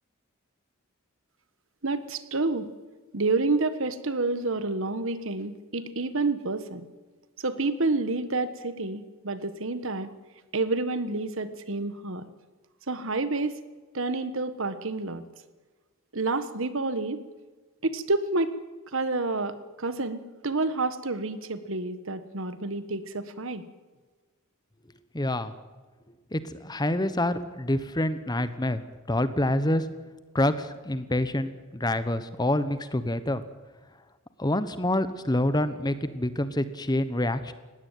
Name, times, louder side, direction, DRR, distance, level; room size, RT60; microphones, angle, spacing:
voice 1, 1.8-2.7 3.1-6.9 7.4-10.1 10.5-12.2 12.9-13.6 13.9-15.2 16.1-17.2 17.8-18.6 18.9-23.6, right 3 dB, 60° right, 12 dB, 1.5 m, -29 dB
voice 2, 25.1-25.5 26.3-28.8 29.1-29.8 30.3-33.4 34.4-37.5, left 1 dB, 20° left, 13 dB, 1.0 m, -27 dB
19.5 x 16.5 x 9.2 m, 1.3 s
head